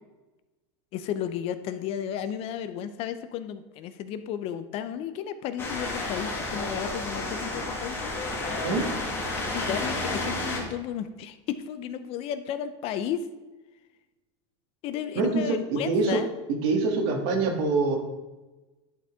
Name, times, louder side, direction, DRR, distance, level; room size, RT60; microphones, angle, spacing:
voice 1, 0.9-8.1 9.3-13.2 14.8-16.3, left 9 dB, 45° left, 11 dB, 0.5 m, -33 dB
sound 1, 5.6-10.6, left 2 dB, 15° left, 1.6 m, -31 dB
voice 2, 15.1-16.2 16.5-18.0, right 3 dB, 60° right, 3 dB, 1.6 m, -25 dB
10.5 x 4.4 x 3.5 m, 1.1 s
supercardioid pair, 135°, 14 cm